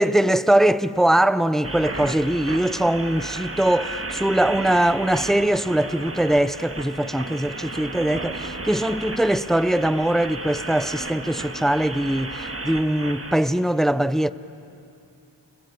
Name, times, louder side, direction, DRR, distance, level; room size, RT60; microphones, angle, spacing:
voice 1, 0.0-14.3, right 1 dB, ahead, 0.5 m, -21 dB
sound 1, 1.6-13.3, right 2 dB, 30° right, 1.6 m, -34 dB
29.5 x 22.0 x 8.9 m
wide cardioid pair, 70°, 43 cm